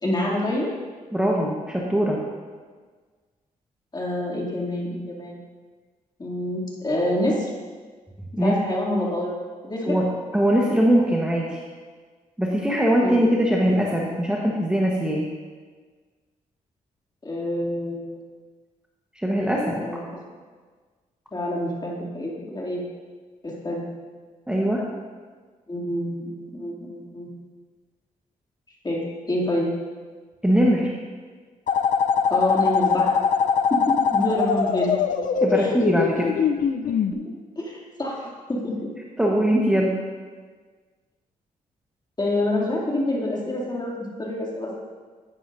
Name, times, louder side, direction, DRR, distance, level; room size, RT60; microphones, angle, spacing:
voice 1, 0.0-0.7 3.9-5.4 6.2-7.5 8.3-9.3 9.6-10.0 13.0-13.1 17.2-18.2 19.8-20.2 21.3-22.8 23.4-23.8 25.7-27.3 28.8-29.0 29.3-29.7 32.3-33.1 33.7-34.9 35.5-35.7 37.6-38.9 42.2-43.9 44.2-44.8, left 1 dB, 30° left, -3 dB, 2.6 m, -27 dB
voice 2, 1.1-2.2 8.4-8.6 9.8-11.6 12.4-15.2 19.1-19.8 24.5-24.9 30.4-30.9 35.4-36.4 37.1-37.3 39.2-40.0, equal, 5° right, -2 dB, 1.2 m, -21 dB
sound 1, 31.7-37.1, left 6 dB, 60° left, 0.5 m, -22 dB
11.0 x 9.4 x 2.6 m, 1.5 s
cardioid pair, 65°, 15 cm